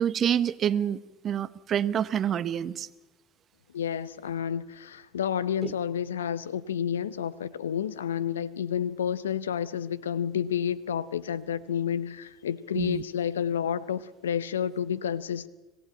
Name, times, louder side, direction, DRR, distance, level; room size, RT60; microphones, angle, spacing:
voice 1, 0.0-2.9 5.6-5.7 12.8-13.0, right 9 dB, 40° right, 1.0 m, -27 dB
voice 2, 3.7-15.5, left 8 dB, 85° left, 0.7 m, -30 dB
26.5 x 16.0 x 8.8 m
hypercardioid pair, 75°, 0 cm